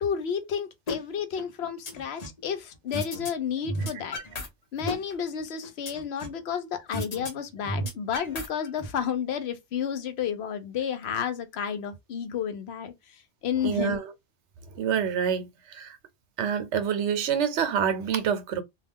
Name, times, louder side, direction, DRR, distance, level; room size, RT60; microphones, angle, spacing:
voice 1, 0.0-4.2 4.7-12.9 13.4-14.0, left 7 dB, 70° left, 0.9 m, -31 dB
sound 1, 0.9-1.0 1.4-2.4 2.9-3.3 3.6-4.5 4.8-6.4 6.9-7.3 7.6-8.9, left 1 dB, 40° left, 0.7 m, -33 dB
voice 2, 13.6-14.1 14.7-16.0 16.4-18.6, right 7 dB, 80° right, 0.9 m, -27 dB
2.3 x 2.2 x 3.4 m
omnidirectional pair, 1.2 m